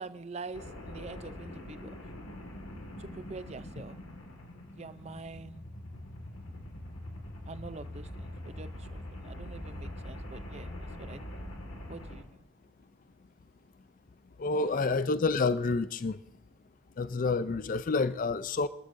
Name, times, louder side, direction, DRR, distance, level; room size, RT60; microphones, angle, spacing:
voice 1, 0.0-1.9 3.0-4.0 4.8-5.7 7.5-10.7 11.0-11.2 11.9-12.2 14.9-15.0, right 3 dB, 30° right, 0.5 m, -45 dB
sound 1, 0.5-12.2, left 1 dB, 75° left, 1.9 m, -43 dB
voice 2, 14.4-16.2 17.0-18.7, left 3 dB, 40° left, 0.4 m, -28 dB
25.0 x 12.5 x 2.6 m
head